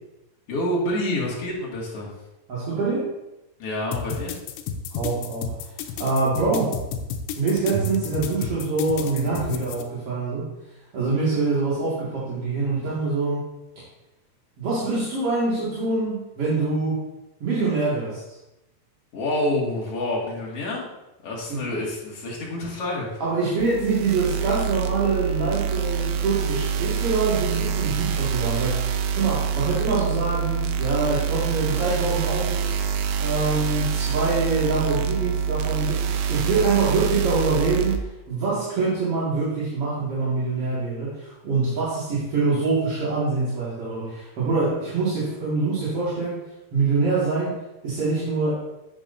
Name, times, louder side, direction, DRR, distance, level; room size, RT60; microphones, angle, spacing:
voice 1, 0.5-2.1 3.6-4.3 19.1-20.9 21.2-23.1, left 1 dB, 45° left, -4 dB, 2.2 m, -27 dB
voice 2, 2.5-3.1 4.9-5.7 6.0-6.8 7.3-10.5 10.9-13.5 14.6-17.0 17.4-18.2 21.5-21.6 23.2-28.9 29.1-32.8 33.2-36.0 36.3-46.4 46.7-47.6 47.8-48.6, right 3 dB, 45° right, -9 dB, 2.2 m, -25 dB
sound 1, 3.9-9.8, left 8 dB, 90° left, 2.9 m, -31 dB
sound 2, 23.6-38.0, right 7 dB, 80° right, 2.5 m, -26 dB
10.5 x 8.4 x 2.7 m, 0.96 s
omnidirectional pair, 5.1 m